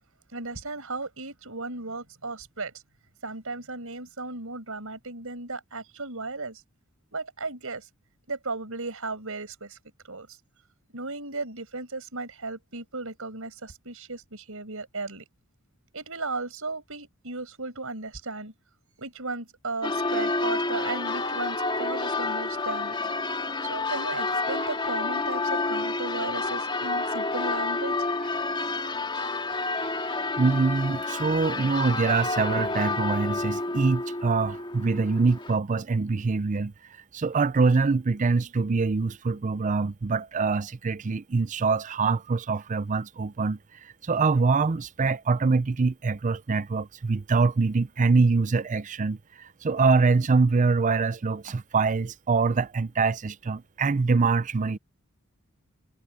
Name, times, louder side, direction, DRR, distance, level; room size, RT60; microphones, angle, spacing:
voice 1, 0.3-2.7 3.2-6.6 7.1-7.9 8.3-9.8 10.1-10.4 10.9-15.2 15.9-18.5 19.0-23.0 23.6-28.0, right 3 dB, 70° right, 6.3 m, -35 dB
Church bell, 19.8-35.6, left 3 dB, 25° left, 2.8 m, -29 dB
voice 2, 30.4-36.7 37.1-43.6 44.0-54.8, right 4 dB, 35° right, 0.5 m, -24 dB
head